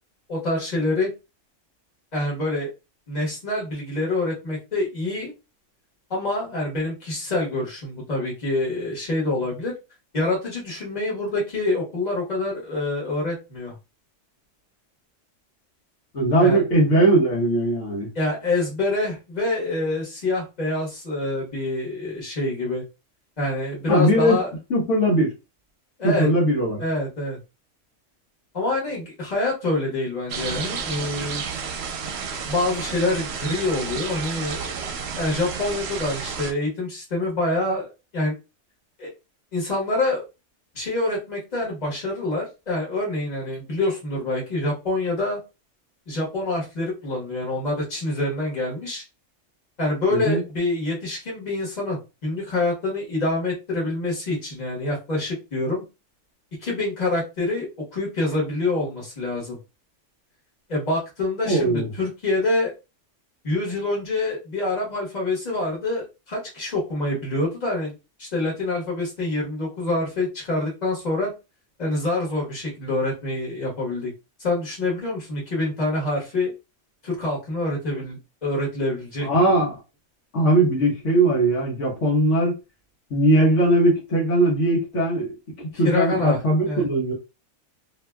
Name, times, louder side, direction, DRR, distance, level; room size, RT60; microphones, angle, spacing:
voice 1, 0.3-1.1 2.1-2.7 3.1-5.3 6.1-9.7 10.1-13.7 16.4-16.6 18.1-22.8 23.4-24.5 26.0-26.3 26.8-27.4 28.5-31.4 32.4-34.8 35.1-38.4 39.0-39.1 39.5-40.2 40.7-45.4 46.1-49.0 49.8-55.8 56.6-59.6 60.7-62.7 63.4-67.9 68.2-71.3 71.8-74.1 74.4-76.5 77.0-79.6 85.7-86.8, left 2 dB, 35° left, 1.4 m, -26 dB
voice 2, 16.1-18.1 23.9-24.4 24.7-25.3 26.0-26.8 50.1-50.4 61.4-61.9 79.2-79.7 80.3-82.5 83.1-85.3 85.6-87.1, right 1 dB, 75° left, 1.3 m, -19 dB
sound 1, 30.3-36.5, right 6 dB, 65° right, 0.8 m, -31 dB
2.8 x 2.6 x 2.2 m
omnidirectional pair, 1.3 m